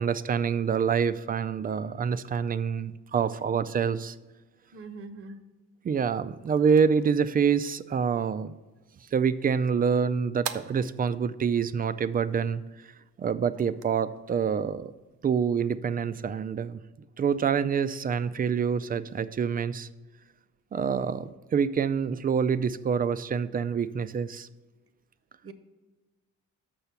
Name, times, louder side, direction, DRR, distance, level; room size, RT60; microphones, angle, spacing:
voice 1, 0.0-4.1 5.8-8.5 9.1-12.6 13.2-14.9 15.2-16.8 17.2-19.9 20.7-24.5, right 6 dB, 30° right, 0.4 m, -26 dB
voice 2, 4.7-5.4 25.4-25.5, right 3 dB, 50° right, 0.8 m, -42 dB
sound 1, 6.0-15.8, right 9 dB, 80° right, 0.6 m, -47 dB
6.9 x 5.6 x 5.7 m
cardioid pair, 90°, 30 cm